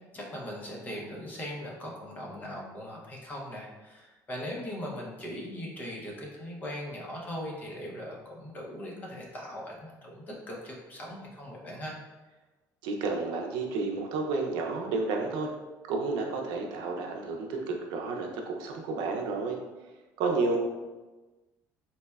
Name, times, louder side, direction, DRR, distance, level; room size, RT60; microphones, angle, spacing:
voice 1, 0.1-11.9, equal, 25° left, -3 dB, 0.6 m, -39 dB
voice 2, 12.8-15.5 15.9-19.6 20.2-20.6, right 3 dB, 90° right, 1 dB, 0.5 m, -31 dB
4.0 x 2.1 x 2.3 m, 1.2 s
cardioid pair, 160°, 7 cm